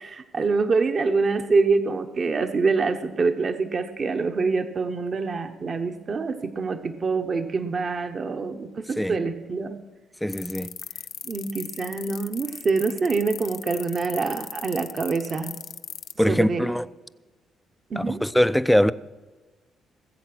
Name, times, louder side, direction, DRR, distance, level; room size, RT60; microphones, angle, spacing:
voice 1, 0.0-9.8 11.2-15.6 16.3-16.7 17.9-18.2, right 4 dB, 45° right, 1.0 m, -25 dB
voice 2, 10.2-10.8 16.2-16.9 17.9-18.9, equal, 5° left, 0.5 m, -22 dB
sound 1, 10.3-16.1, left 9 dB, 70° left, 0.7 m, -36 dB
19.5 x 7.8 x 6.1 m
cardioid pair, 90°, 0 cm